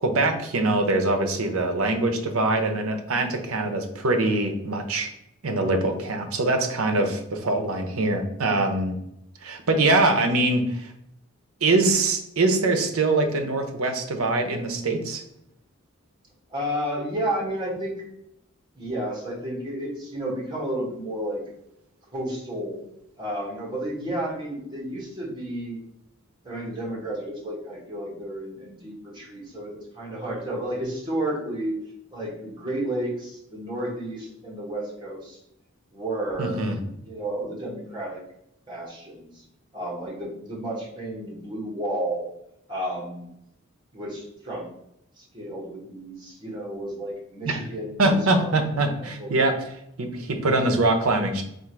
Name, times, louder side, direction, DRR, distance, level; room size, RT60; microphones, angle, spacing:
voice 1, 0.0-5.1 5.4-9.0 9.4-10.9 11.6-15.2 36.4-36.8 47.5-47.6 48.0-49.6 50.0-51.4, right 2 dB, 75° right, 5 dB, 0.7 m, -23 dB
voice 2, 16.5-17.9 18.7-21.4 22.1-22.8 23.2-25.8 26.4-31.8 32.1-35.4 35.9-36.6 37.0-38.2 38.7-39.4 39.7-42.3 42.7-43.3 43.9-44.7 45.2-49.4, right 1 dB, 20° right, -4 dB, 1.4 m, -32 dB
3.7 x 2.5 x 4.5 m, 0.79 s
head